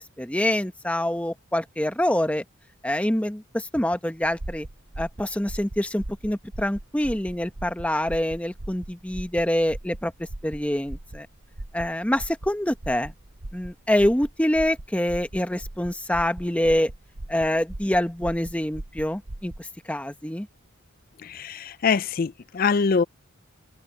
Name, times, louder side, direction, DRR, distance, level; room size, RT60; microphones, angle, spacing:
voice 1, 0.0-2.4 2.8-4.7 5.0-10.1 10.4-11.3 11.7-13.1 13.5-16.9 17.3-20.5, left 1 dB, 5° left, 0.9 m, -25 dB
sound 1, 4.2-19.7, right 1 dB, 75° right, 1.3 m, -39 dB
voice 2, 21.2-23.0, left 5 dB, 45° left, 0.4 m, -24 dB
head